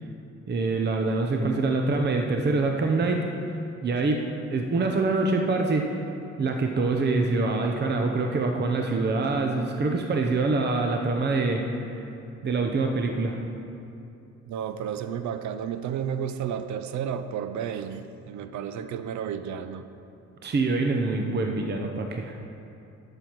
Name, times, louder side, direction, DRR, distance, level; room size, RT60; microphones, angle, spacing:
voice 1, 0.5-3.3 3.8-4.2 4.5-5.9 6.4-11.6 12.4-13.4 20.4-22.3, right 3 dB, 35° right, 3 dB, 0.8 m, -25 dB
voice 2, 14.5-19.9, right 8 dB, 70° right, 11 dB, 0.6 m, -32 dB
11.5 x 6.9 x 4.7 m, 2.7 s
cardioid pair, 90°, 30 cm